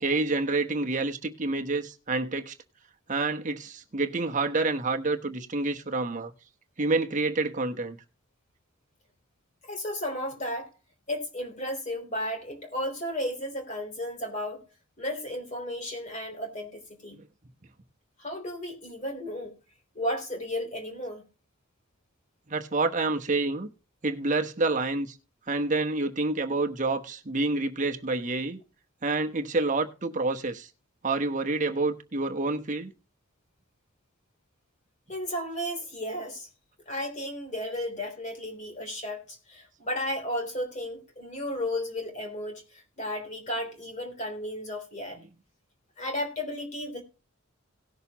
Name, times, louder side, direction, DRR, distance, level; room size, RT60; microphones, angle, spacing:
voice 1, 0.0-2.5 3.1-6.3 6.8-8.0 22.5-23.7 24.0-25.1 25.5-28.6 29.0-30.7 31.0-32.9 45.1-45.2, right 3 dB, 35° right, 1.0 m, -28 dB
voice 2, 9.6-10.7 11.1-14.7 15.0-17.2 18.2-19.5 19.9-21.2 35.1-36.5 36.9-45.2 46.0-47.0, left 1 dB, 35° left, 3.4 m, -34 dB
18.0 x 6.6 x 3.0 m
head